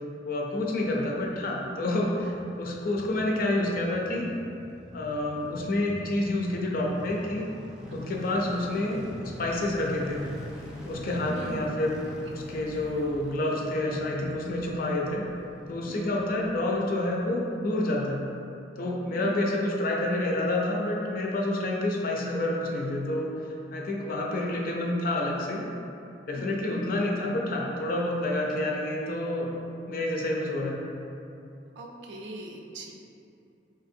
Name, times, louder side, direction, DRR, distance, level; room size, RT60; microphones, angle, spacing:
voice 1, 0.2-4.3 4.9-7.5 7.9-9.0 9.4-10.2 10.8-12.0 12.3-15.2 15.7-18.2 18.8-25.7 26.3-29.5 29.9-30.8, left 1 dB, 50° left, -2 dB, 0.4 m, -28 dB
sound 1, 2.2-17.3 17.5-17.6, equal, 5° right, 0.5 m, -44 dB
voice 2, 11.3-11.7 12.3-12.4 15.9-16.2 19.1-19.4 26.3-26.6 31.8-32.9, right 1 dB, 75° right, 1 dB, 0.4 m, -41 dB
4.1 x 2.7 x 2.6 m, 2.7 s
head